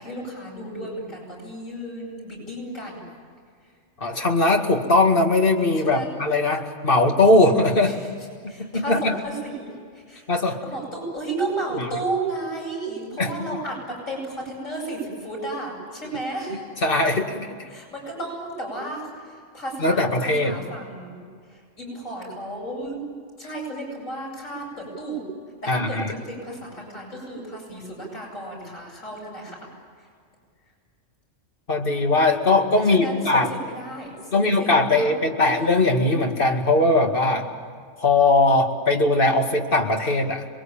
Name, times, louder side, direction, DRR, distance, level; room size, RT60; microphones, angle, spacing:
voice 1, 0.0-3.0 5.8-6.2 7.8-8.1 8.5-16.6 17.7-23.0 23.4-25.3 25.6-29.6 32.8-35.5, right 2 dB, 90° left, -2 dB, 8.6 m, -33 dB
voice 2, 4.0-7.9 8.4-9.2 10.3-10.6 13.2-13.3 16.8-17.7 19.8-20.6 25.7-26.1 31.7-33.5 34.3-37.5 38.0-40.4, left 2 dB, 45° left, 2 dB, 2.3 m, -20 dB
27.5 x 22.0 x 8.9 m, 2.1 s
omnidirectional pair, 1.3 m